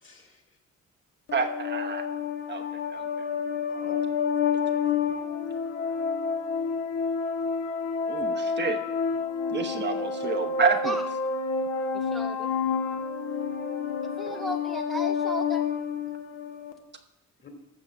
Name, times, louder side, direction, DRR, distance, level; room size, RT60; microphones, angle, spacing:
voice 1, 0.0-0.4 3.7-4.2 4.6-5.4 14.2-14.4 17.4-17.5, left 3 dB, 40° left, 4 dB, 2.7 m, -49 dB
sound 1, 1.3-16.7, left 5 dB, 55° left, 1.3 m, -29 dB
voice 2, 1.3-2.1 2.5-2.6 2.9-3.2 8.1-8.8 9.5-11.0, right 5 dB, 35° right, 5 dB, 1.0 m, -28 dB
voice 3, 11.9-12.5 14.2-15.6, right 2 dB, ahead, 7 dB, 0.3 m, -35 dB
14.0 x 5.2 x 6.1 m, 0.92 s
cardioid pair, 90°, 30 cm